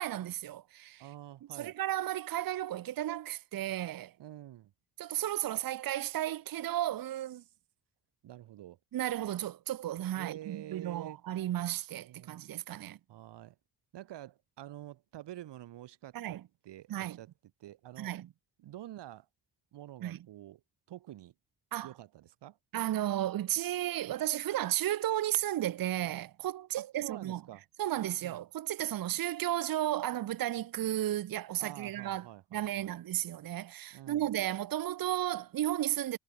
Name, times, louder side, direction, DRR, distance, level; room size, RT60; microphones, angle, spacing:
voice 1, 0.0-1.0 1.6-4.1 5.0-7.4 8.9-13.0 16.1-16.4 16.9-17.2 18.0-18.3 20.0-20.2 21.7-21.9 22.7-27.4 27.8-32.2 32.5-36.2, right 13 dB, 55° right, 0.8 m, -34 dB
voice 2, 1.0-1.7 4.2-4.7 8.2-8.8 10.1-11.2 12.0-12.5 13.1-13.6 13.9-16.4 16.6-17.3 17.6-18.1 18.6-19.3 19.7-20.6 20.9-21.3 21.8-22.6 26.8-27.6 28.2-28.4 31.6-33.0 33.9-34.3, right 13 dB, 80° right, 4.2 m, -48 dB
cardioid pair, 70°, 41 cm